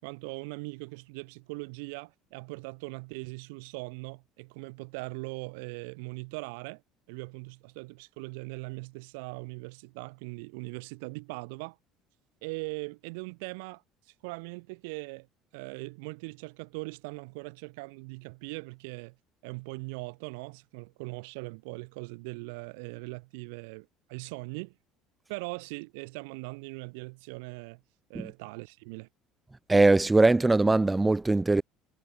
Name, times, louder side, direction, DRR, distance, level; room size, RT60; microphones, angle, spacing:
voice 1, 0.0-6.8 7.1-11.8 12.4-13.8 14.2-15.3 15.5-19.1 19.4-24.7 25.3-27.8 28.1-29.1, right 30 dB, 80° right, 7.7 m, -40 dB
voice 2, 29.7-31.6, right 2 dB, 15° right, 3.2 m, -21 dB
hypercardioid pair, 75°, 0 cm